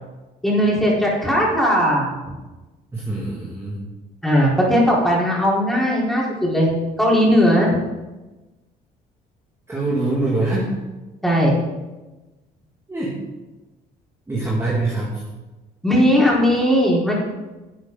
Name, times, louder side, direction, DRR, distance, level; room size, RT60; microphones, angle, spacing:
voice 1, 0.4-2.1 4.2-6.7 7.0-7.7 11.2-11.5 15.8-17.1, equal, ahead, -5 dB, 4.4 m, -18 dB
voice 2, 2.9-3.9 9.7-10.8 12.9-13.2 14.3-15.2, right 2 dB, 15° right, -5 dB, 2.4 m, -24 dB
12.0 x 9.1 x 4.0 m, 1.1 s
cardioid pair, 110°, 17 cm